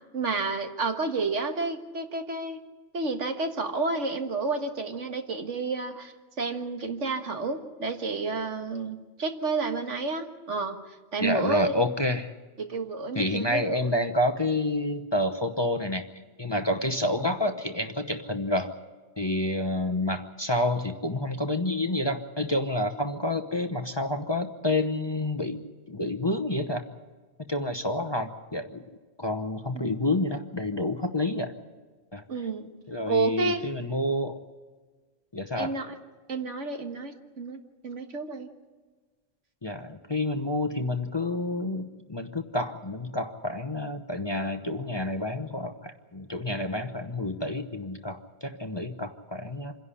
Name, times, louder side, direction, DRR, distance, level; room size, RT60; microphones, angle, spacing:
voice 1, 0.1-2.6 2.9-10.8 11.1-11.8 12.6-13.7 29.7-30.0 32.3-32.7 33.1-33.6 35.6-36.0 36.3-38.5, right 3 dB, 75° right, 6 dB, 1.9 m, -30 dB
voice 2, 11.2-12.3 13.1-16.1 16.4-18.7 19.2-25.6 25.9-26.8 27.5-28.8 29.2-31.5 32.1-32.5 32.9-34.4 35.3-35.8 39.6-49.7, left 1 dB, 25° left, 7 dB, 0.9 m, -29 dB
27.0 x 11.0 x 10.0 m, 1.4 s
omnidirectional pair, 1.3 m